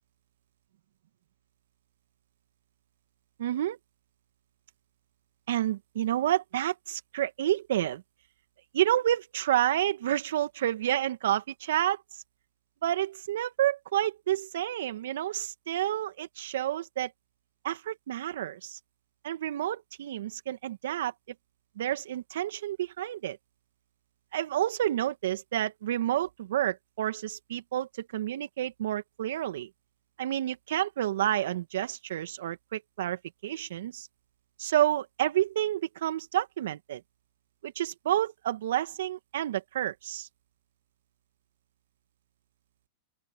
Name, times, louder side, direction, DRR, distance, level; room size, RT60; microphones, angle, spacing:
voice 1, 3.4-3.8 5.5-8.0 8.7-12.2 12.8-17.1 17.6-18.8 19.2-21.1 21.8-23.4 24.3-29.7 30.2-34.1 34.6-37.0 37.6-40.3, right 12 dB, 75° right, 2.0 m, -29 dB
open air
hypercardioid pair, 105°, 0 cm